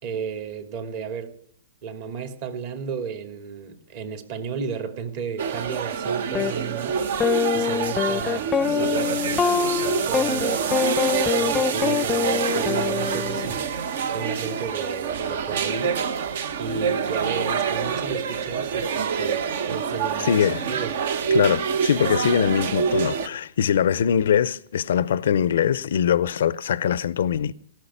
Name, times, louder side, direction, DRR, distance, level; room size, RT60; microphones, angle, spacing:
voice 1, 0.0-1.4 1.8-7.3 7.5-10.8 11.3-13.7 14.1-16.3 16.6-21.0, right 5 dB, 50° right, 2.8 m, -33 dB
sound 1, 5.4-23.3, right 6 dB, 65° right, 1.2 m, -26 dB
sound 2, 6.3-6.5 7.2-13.5, left 7 dB, 20° left, 0.5 m, -24 dB
voice 2, 20.2-20.6 21.3-27.5, left 8 dB, 70° left, 0.5 m, -22 dB
18.0 x 6.5 x 10.0 m
hypercardioid pair, 120°, 0 cm